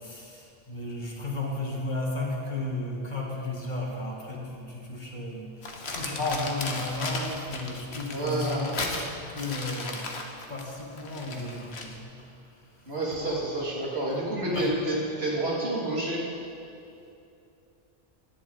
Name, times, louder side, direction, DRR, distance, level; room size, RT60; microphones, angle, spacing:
voice 1, 0.0-10.0 10.5-12.2 14.5-14.8, left 2 dB, 45° left, -2 dB, 2.1 m, -34 dB
Crumpling crinkling, 5.6-12.0, left 3 dB, 80° left, 1.5 m, -36 dB
voice 2, 8.1-8.7 12.9-16.3, right 1 dB, 75° right, -5 dB, 3.0 m, -29 dB
17.5 x 11.5 x 4.0 m, 2.7 s
omnidirectional pair, 1.1 m